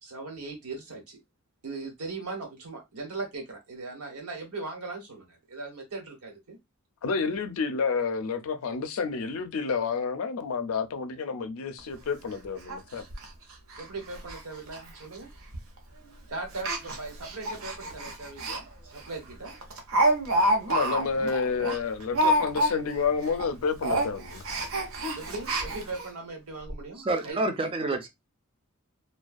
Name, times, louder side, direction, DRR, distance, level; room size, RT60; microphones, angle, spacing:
voice 1, 0.0-1.2 1.6-6.6 13.8-15.3 16.3-19.5 25.2-27.7, right 3 dB, 90° right, 1.1 m, -39 dB
voice 2, 7.0-13.0 20.7-24.4, left 5 dB, 70° left, 0.4 m, -29 dB
Speech, 11.8-11.9 12.2-12.3 12.7-12.8 13.1-13.3 13.7-13.9 14.1-14.4 14.7-14.8 15.5-15.8 16.5-18.6 19.0-19.1 19.4-23.0 23.3-23.5 23.8-26.1 26.7-26.8 27.0-27.1, right 1 dB, 65° right, 0.6 m, -28 dB
voice 3, 27.0-28.1, right 2 dB, 25° right, 0.3 m, -28 dB
2.3 x 2.2 x 2.4 m
head